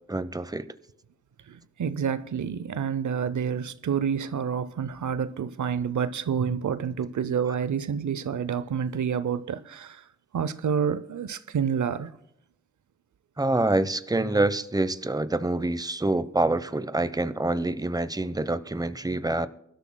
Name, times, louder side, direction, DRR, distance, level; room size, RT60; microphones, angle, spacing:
voice 1, 0.1-0.7 13.4-19.5, right 2 dB, 15° right, 0.8 m, -26 dB
voice 2, 1.5-10.0 10.3-12.1, right 7 dB, 85° right, 0.6 m, -28 dB
23.5 x 12.5 x 2.2 m
cardioid pair, 50°, 29 cm